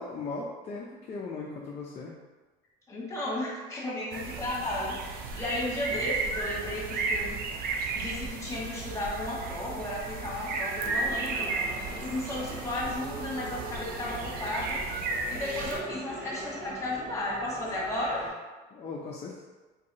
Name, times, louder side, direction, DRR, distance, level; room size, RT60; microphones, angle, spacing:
voice 1, 0.0-2.2 5.9-6.1 18.7-19.4, left 3 dB, 35° left, -3 dB, 0.5 m, -38 dB
voice 2, 2.9-5.0 5.4-7.4 7.9-11.5 12.0-14.8 15.3-18.2, left 1 dB, 15° left, -5 dB, 1.3 m, -34 dB
sound 1, 4.1-15.8, right 3 dB, 50° right, 0.5 m, -34 dB
sound 2, 10.8-18.3, right 1 dB, 15° right, 1.1 m, -42 dB
3.9 x 2.7 x 2.6 m, 1.3 s
cardioid pair, 115°, 19 cm